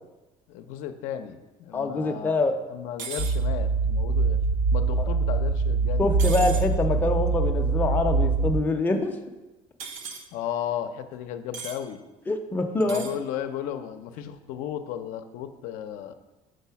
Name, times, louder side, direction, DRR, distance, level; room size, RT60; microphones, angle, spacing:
voice 1, 0.5-4.4 4.7-6.5 10.3-12.0 12.9-16.1, left 10 dB, 80° left, 8 dB, 0.5 m, -35 dB
voice 2, 1.7-2.5 5.0-5.1 6.0-9.1 12.3-13.1, left 2 dB, 15° left, 3 dB, 0.5 m, -25 dB
sound 1, 3.0-3.4 6.2-6.7 9.8-10.2 11.5-11.8 12.8-13.2, right 6 dB, 75° right, 0.8 m, -36 dB
sound 2, 3.2-8.6, right 4 dB, 50° right, 0.4 m, -24 dB
6.5 x 4.1 x 5.7 m, 1.1 s
cardioid pair, 150°, 13 cm